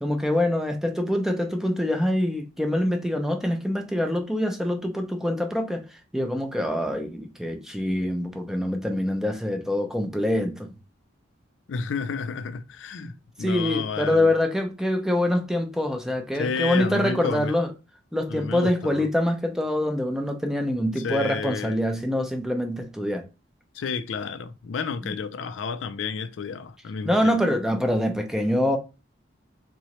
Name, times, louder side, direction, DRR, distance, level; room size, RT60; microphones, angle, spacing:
voice 1, 0.0-5.8 6.1-10.7 13.0-13.1 13.4-17.7 18.1-23.3 25.0-25.1 27.0-28.8, left 1 dB, 5° right, 0.5 m, -25 dB
voice 2, 11.7-14.3 16.3-17.5 18.3-19.1 21.0-21.8 23.7-27.4, left 5 dB, 75° left, 0.4 m, -31 dB
3.7 x 3.1 x 3.0 m
head